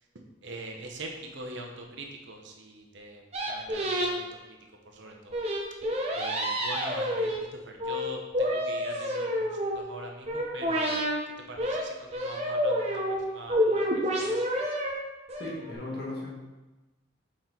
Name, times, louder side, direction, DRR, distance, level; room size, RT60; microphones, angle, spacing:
voice 1, 0.4-4.3 4.8-5.4 6.1-11.1 11.4-14.6, right 1 dB, 70° right, 2 dB, 0.9 m, -43 dB
sound 1, 3.3-4.1 5.3-7.4 7.8-8.1 8.3-9.8 10.3-11.1 11.6-11.8 12.1-13.2 13.5-14.9 15.3-15.7, equal, 30° right, 0.8 m, -28 dB
voice 2, 15.4-16.4, left 2 dB, 55° left, -3 dB, 1.5 m, -36 dB
6.3 x 4.4 x 3.9 m, 1.1 s
head